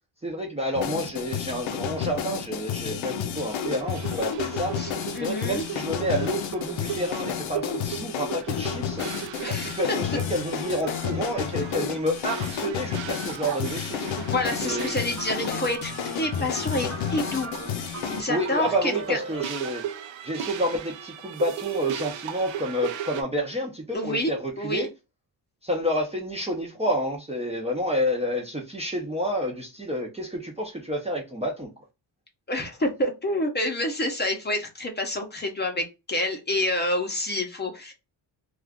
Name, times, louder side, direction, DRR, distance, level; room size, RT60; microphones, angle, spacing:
voice 1, 0.2-4.8 5.2-9.0 9.5-14.1 14.6-14.9 18.3-19.8 20.2-24.9 25.6-31.7, equal, 15° right, 0.6 m, -29 dB
sound 1, 0.7-18.2, left 8 dB, 85° left, 0.6 m, -31 dB
sound 2, 3.4-23.2, right 9 dB, 75° right, 0.6 m, -37 dB
voice 2, 4.8-5.7 9.4-10.0 11.7-12.0 14.1-15.9 16.2-17.5 18.1-19.2 23.9-24.9 32.5-37.9, left 1 dB, 20° left, 0.7 m, -28 dB
sound 3, 14.3-20.1, right 3 dB, 35° right, 0.9 m, -40 dB
2.4 x 2.4 x 3.5 m
cardioid pair, 115°, 46 cm